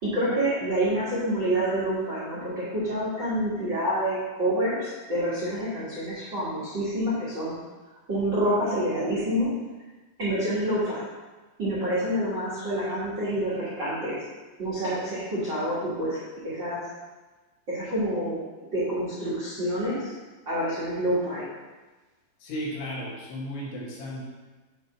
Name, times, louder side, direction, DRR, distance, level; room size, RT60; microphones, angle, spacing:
voice 1, 0.0-7.5 8.1-9.5 10.2-11.0 11.6-14.2 14.6-16.8 17.7-18.4 18.7-20.1 20.4-21.4, right 1 dB, 70° right, -9 dB, 1.1 m, -27 dB
voice 2, 22.4-24.3, equal, 80° left, -5 dB, 4.0 m, -34 dB
8.9 x 3.2 x 5.7 m, 1.2 s
omnidirectional pair, 5.2 m